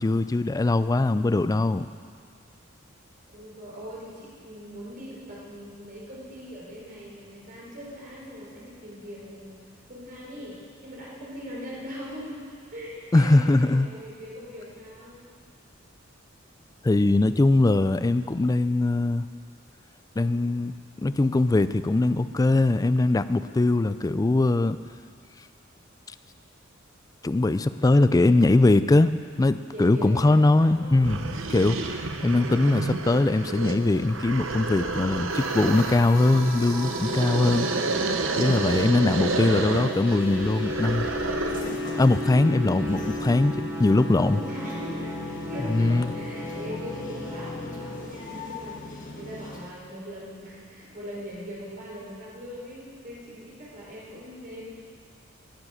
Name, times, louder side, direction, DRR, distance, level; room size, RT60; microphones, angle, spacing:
voice 1, 0.0-1.9 13.1-13.9 16.8-19.2 20.2-20.7 21.0-24.8 27.2-37.7 38.4-41.1 42.0-44.4 45.7-46.1, left 2 dB, 20° left, 13 dB, 0.3 m, -21 dB
voice 2, 3.3-9.6 9.9-12.4 12.7-15.2 28.0-28.8 29.7-31.2 32.3-32.5 42.3-43.1 44.1-54.7, equal, 45° right, -6 dB, 4.6 m, -41 dB
sound 1, 31.0-41.8, right 3 dB, 80° right, 0.9 m, -30 dB
sound 2, 35.3-48.1, left 1 dB, 15° right, 4.7 m, -34 dB
sound 3, 41.5-49.7, left 2 dB, 45° left, 1.4 m, -41 dB
19.5 x 7.4 x 6.5 m, 2.1 s
head